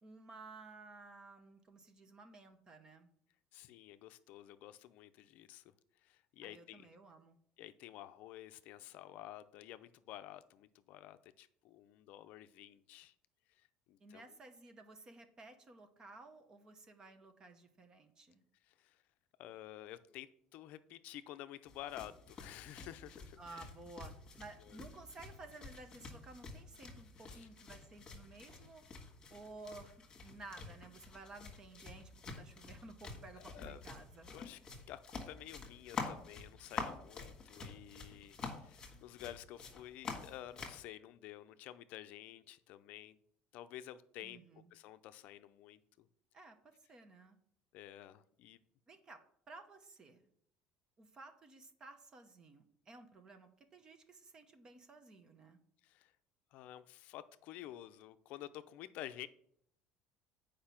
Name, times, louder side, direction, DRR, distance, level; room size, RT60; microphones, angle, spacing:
voice 1, 0.0-3.1 6.4-7.4 14.0-18.4 23.4-28.8 29.3-34.3 44.2-44.7 46.3-47.4 48.9-50.3 51.0-55.6, right 3 dB, 25° right, 8 dB, 0.8 m, -55 dB
voice 2, 3.5-5.7 6.0-6.9 7.6-13.1 13.5-14.4 18.6-19.0 19.4-23.7 24.6-24.8 27.3-27.5 33.4-33.8 34.3-34.6 34.9-43.2 43.5-46.1 47.7-48.6 55.8-56.1 56.5-59.3, left 13 dB, 55° left, 12 dB, 0.5 m, -51 dB
sound 1, 21.7-40.8, left 4 dB, 25° left, 1.6 m, -48 dB
8.7 x 5.1 x 5.8 m, 0.68 s
cardioid pair, 165°, 3 cm